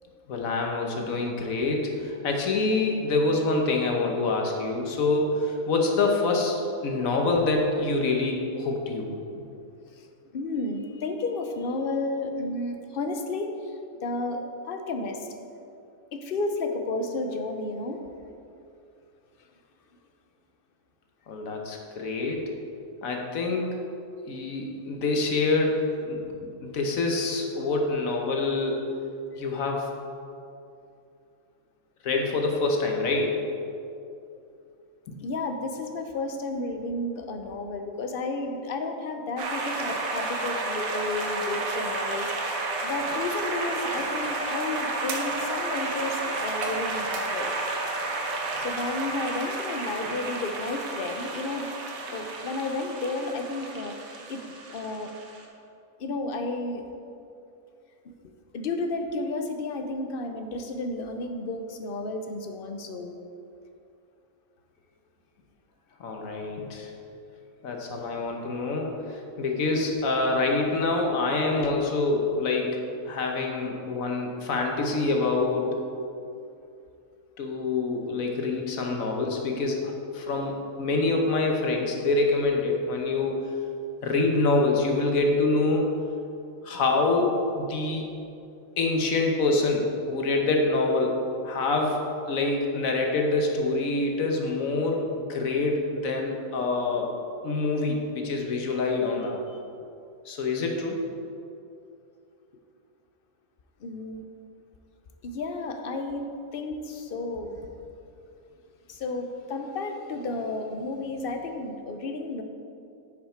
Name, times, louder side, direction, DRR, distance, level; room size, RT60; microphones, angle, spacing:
voice 1, 0.3-9.1 21.3-22.5 23.0-23.7 24.3-26.2 26.6-28.9 29.3-29.9 32.0-33.5 35.1-35.2 66.0-66.9 67.6-72.8 73.1-75.8 77.4-83.4 84.0-85.9 86.6-88.0 88.8-97.1 97.4-99.4 100.3-101.1, left 3 dB, 80° left, 1 dB, 1.4 m, -26 dB
voice 2, 10.3-13.7 14.0-15.3 16.1-18.0 35.2-47.5 48.6-51.7 52.0-55.1 56.0-56.8 58.5-63.1 71.6-71.7 103.8-104.3 105.2-106.3 106.5-107.6 108.9-112.4, left 2 dB, 50° left, 5 dB, 0.8 m, -32 dB
sound 1, 39.4-55.4, right 2 dB, 85° right, 1.4 m, -31 dB
9.7 x 5.9 x 4.4 m, 2.6 s
omnidirectional pair, 1.4 m